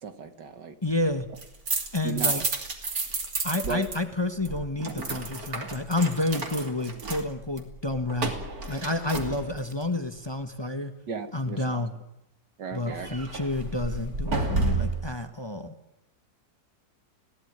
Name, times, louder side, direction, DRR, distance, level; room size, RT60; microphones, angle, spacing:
voice 1, 0.0-0.7 2.0-2.4 3.6-3.8 11.1-11.9 12.6-13.2, right 5 dB, 75° right, 9 dB, 2.4 m, -35 dB
voice 2, 0.8-1.3 1.9-2.4 3.4-8.3 8.7-10.9 11.3-11.9 12.7-15.7, left 2 dB, 15° left, 8 dB, 1.4 m, -29 dB
sound 1, 1.2-4.0 4.2-9.8 12.9-15.1, right 3 dB, 55° right, 3.3 m, -31 dB
21.0 x 17.0 x 9.6 m, 0.86 s
omnidirectional pair, 1.9 m